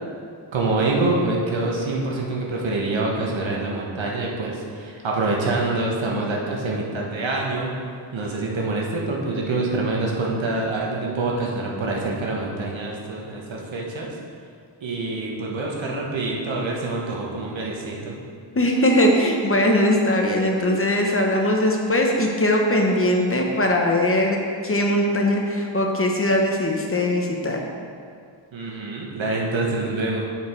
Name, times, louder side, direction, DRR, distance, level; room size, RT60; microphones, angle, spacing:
voice 1, 0.5-7.7 8.1-14.1 14.8-18.2 28.5-30.2, right 2 dB, 90° right, -2 dB, 1.3 m, -26 dB
voice 2, 18.5-27.6, left 1 dB, 30° left, 0 dB, 0.9 m, -20 dB
7.1 x 6.1 x 4.5 m, 2.2 s
wide cardioid pair, 120°, 44 cm